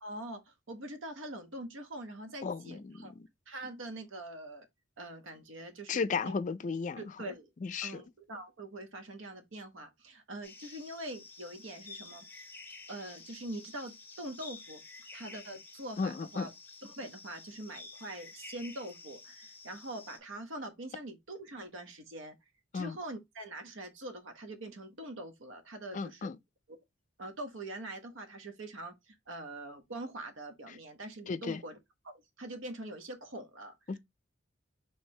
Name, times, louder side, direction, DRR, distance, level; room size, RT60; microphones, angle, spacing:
voice 1, 0.0-3.1 3.5-4.7 5.0-6.3 7.0-7.5 7.8-12.5 12.9-14.8 15.1-16.5 16.8-22.3 22.7-26.3 27.2-31.8 32.0-33.7, right 1 dB, 80° right, 1.0 m, -44 dB
voice 2, 2.4-3.3 5.9-7.0 7.6-8.0 16.0-16.5 22.7-23.0 25.9-26.4 31.3-31.6 33.9-34.0, left 5 dB, 40° left, 0.4 m, -34 dB
sound 1, 10.4-20.2, left 3 dB, 10° left, 0.8 m, -51 dB
4.5 x 3.3 x 3.1 m
head